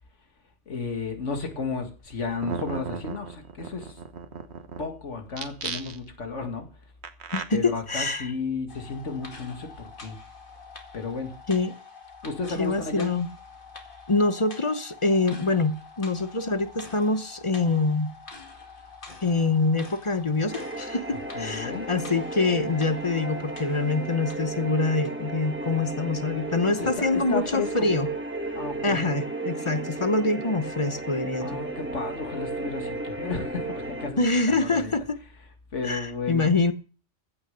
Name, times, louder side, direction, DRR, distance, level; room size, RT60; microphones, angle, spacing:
voice 1, 0.7-4.0 4.8-6.9 7.5-10.2 10.9-11.3 12.2-13.1 21.1-21.9 26.8-27.9 28.5-29.0 31.4-34.9 35.7-36.5, left 4 dB, 75° left, 2.3 m, -33 dB
sound 1, 2.1-2.2 2.4-4.8 5.3-6.2 7.0-7.4, right 6 dB, 60° right, 1.5 m, -35 dB
voice 2, 7.3-8.3 11.5-11.7 12.6-13.3 14.1-18.1 19.2-28.1 28.8-31.6 34.2-35.2 35.8-36.7, left 3 dB, 30° left, 0.8 m, -25 dB
sound 2, 8.7-24.6 25.0-25.1, left 4 dB, 45° left, 2.3 m, -46 dB
sound 3, 20.5-34.1, right 2 dB, 10° right, 1.5 m, -34 dB
15.0 x 6.6 x 6.7 m
omnidirectional pair, 1.3 m